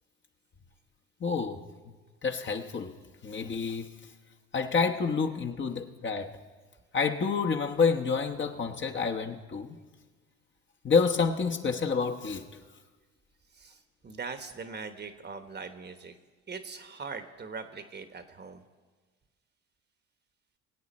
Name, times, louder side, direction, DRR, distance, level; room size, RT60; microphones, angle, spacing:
voice 1, 1.2-1.6 2.2-2.9 3.2-3.9 4.5-6.4 6.9-9.8 10.8-12.4, left 5 dB, 35° left, 1.1 m, -28 dB
voice 2, 13.5-16.2 16.5-18.6, right 5 dB, 30° right, 1.2 m, -41 dB
22.5 x 8.3 x 4.3 m
supercardioid pair, 75°, 33 cm